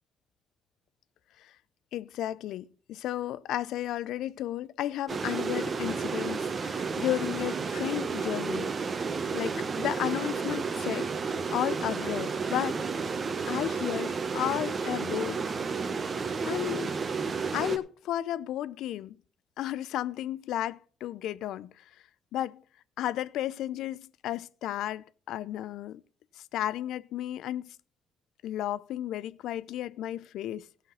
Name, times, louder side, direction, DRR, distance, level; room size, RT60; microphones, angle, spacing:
voice 1, 1.9-8.7 9.3-11.1 11.5-12.9 13.5-15.4 16.4-16.9 17.5-19.2 19.6-21.8 22.3-22.6 23.0-26.0 26.4-27.8 28.4-30.7, left 12 dB, 85° left, 0.4 m, -33 dB
sound 1, 5.1-17.8, right 5 dB, 40° right, 1.1 m, -32 dB
14.5 x 5.8 x 5.5 m
cardioid pair, 90°, 0 cm